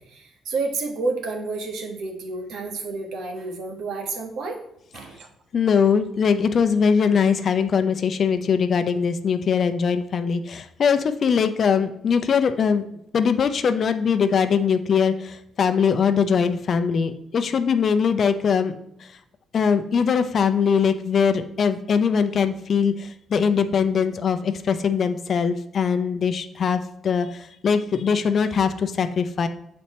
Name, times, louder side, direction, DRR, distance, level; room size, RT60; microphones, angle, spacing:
voice 1, 0.0-4.6 4.9-5.3, right 3 dB, 75° right, 3 dB, 1.3 m, -30 dB
voice 2, 5.5-12.8 13.1-19.1 19.5-29.5, left 6 dB, 55° left, 10 dB, 0.5 m, -21 dB
6.7 x 4.3 x 4.2 m, 0.78 s
cardioid pair, 90°, 0 cm